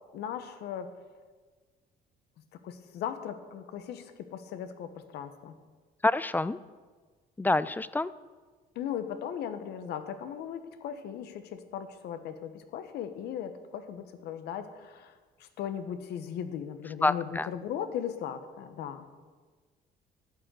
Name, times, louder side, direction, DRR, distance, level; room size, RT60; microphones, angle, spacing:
voice 1, 0.1-0.9 2.5-5.5 8.7-15.1 15.4-19.1, left 9 dB, 75° left, 9 dB, 1.2 m, -38 dB
voice 2, 6.0-6.6 7.4-8.1 17.0-17.5, left 2 dB, 10° left, 17 dB, 0.4 m, -27 dB
12.0 x 6.6 x 9.3 m, 1.4 s
cardioid pair, 110°, 17 cm